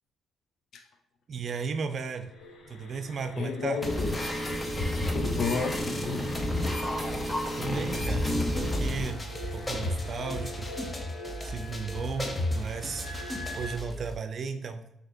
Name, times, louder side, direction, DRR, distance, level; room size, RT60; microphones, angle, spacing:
voice 1, 1.3-2.3 2.7-3.8 7.6-9.2 9.5-10.7 11.4-13.1 13.6-14.9, right 5 dB, 50° right, 8 dB, 0.5 m, -35 dB
sound 1, 2.2-13.8, left 1 dB, 85° left, 0.9 m, -45 dB
voice 2, 3.4-4.2 5.1-6.3, left 4 dB, 65° left, 6 dB, 0.5 m, -31 dB
sound 2, 3.8-13.8, left 1 dB, 20° left, 0.7 m, -31 dB
sound 3, 6.8-7.3 7.7-11.0 11.2-14.2, right 3 dB, 5° left, 1.3 m, -43 dB
5.8 x 2.8 x 2.7 m, 0.83 s
cardioid pair, 90°, 0 cm